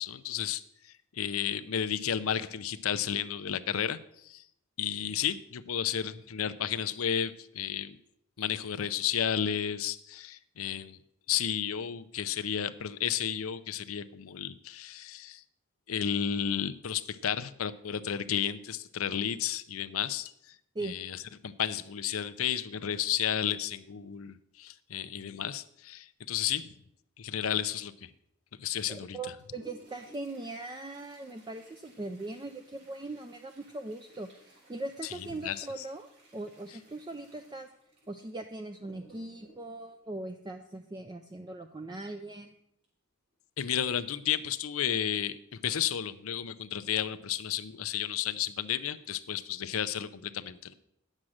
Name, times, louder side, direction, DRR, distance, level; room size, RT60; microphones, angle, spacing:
voice 1, 0.0-4.4 4.8-8.0 8.4-11.0 11.3-15.4 15.9-20.6 20.8-26.7 27.2-28.1 28.6-29.2 35.4-35.7 43.6-50.7, left 9 dB, 90° left, 12 dB, 0.6 m, -32 dB
voice 2, 28.9-37.7 38.1-42.5, right 2 dB, 20° right, 6 dB, 0.5 m, -40 dB
Toilet flush, 29.4-41.0 42.8-42.9 43.3-43.4 44.2-44.3 44.9-45.2 45.6-45.7, right 1 dB, 60° right, 4.8 m, -59 dB
9.7 x 7.5 x 6.4 m, 0.73 s
head